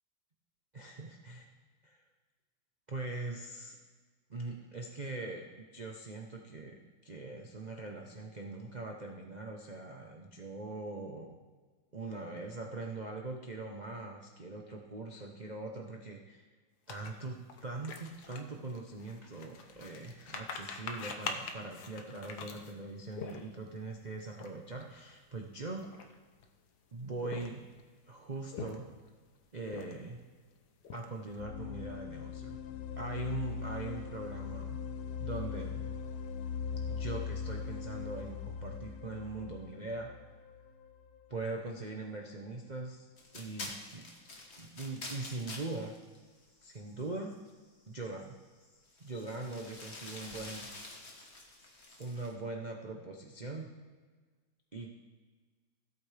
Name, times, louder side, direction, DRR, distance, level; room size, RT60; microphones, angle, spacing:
voice 1, 0.7-1.4 1.8-2.0 2.9-3.8 4.3-11.4 11.9-16.4 16.9-25.9 26.9-27.6 28.1-28.9 29.5-30.2 30.9-32.6 33.0-34.8 35.2-35.8 36.9-40.1 41.3-44.1 44.6-46.0 46.6-47.4 47.9-48.4 49.0-50.7 52.0-53.7 54.7-54.9, right 3 dB, 75° right, 1 dB, 0.4 m, -41 dB
sound 1, 16.9-23.8 24.3-24.5 24.7-25.0 25.6-26.5 27.1-27.8 28.3-29.1 29.6-30.2 30.6-31.4, left 4 dB, 60° left, 1.3 m, -44 dB
sound 2, 31.4-41.2, left 6 dB, 80° left, 1.4 m, -40 dB
sound 3, 43.2-47.5 48.0-48.2 48.6-52.3, left 2 dB, 35° left, 1.4 m, -47 dB
16.5 x 8.4 x 3.4 m, 1.4 s
omnidirectional pair, 2.3 m